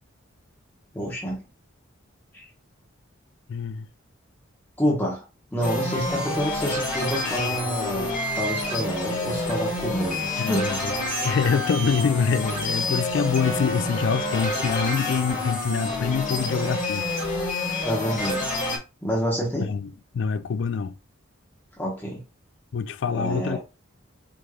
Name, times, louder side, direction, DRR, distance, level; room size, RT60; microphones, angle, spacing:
voice 1, 0.9-1.4 2.3-2.5 4.8-5.2 5.5-10.7 17.8-18.5 19.0-19.7 21.8-22.2 23.1-23.6, equal, 10° left, 1.0 m, -28 dB
voice 2, 3.5-3.9 10.4-10.9 11.2-17.1 19.5-21.0 22.7-23.6, left 6 dB, 60° left, 0.3 m, -25 dB
sound 1, 5.6-18.8, left 2 dB, 40° left, 1.3 m, -28 dB
Trumpet, 13.3-17.7, left 1 dB, 35° right, 1.7 m, -40 dB
4.9 x 3.0 x 2.3 m
head